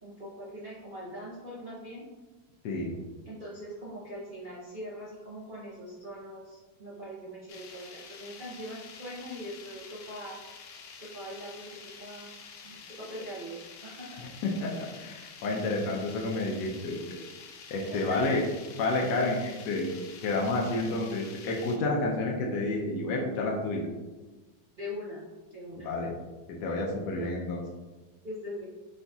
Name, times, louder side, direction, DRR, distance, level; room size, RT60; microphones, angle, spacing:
voice 1, 0.0-2.0 3.3-10.4 10.9-12.3 12.6-14.2 17.9-18.4 22.7-22.9 24.8-25.2 25.5-25.9 27.2-27.3 28.2-28.6, equal, 50° right, -8 dB, 0.6 m, -42 dB
sound 1, 7.5-21.8, left 5 dB, 90° left, 1.4 m, -48 dB
voice 2, 14.4-17.0 17.7-18.4 18.8-19.9 20.2-23.9 25.8-26.1 26.5-27.6, left 2 dB, 70° left, -2 dB, 1.1 m, -30 dB
5.0 x 3.9 x 2.3 m, 1.2 s
omnidirectional pair, 2.1 m